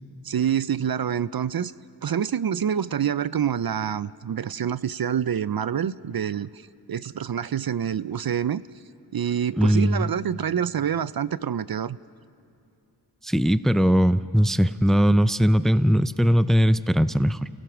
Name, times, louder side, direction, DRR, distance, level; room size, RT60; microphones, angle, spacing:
voice 1, 0.2-1.7 2.0-6.5 6.9-8.6 9.1-12.0, right 8 dB, 60° right, 18 dB, 0.5 m, -26 dB
voice 2, 9.6-10.1 13.2-17.5, equal, ahead, 15 dB, 0.5 m, -20 dB
29.5 x 17.0 x 6.1 m, 2.7 s
wide cardioid pair, 50°, 42 cm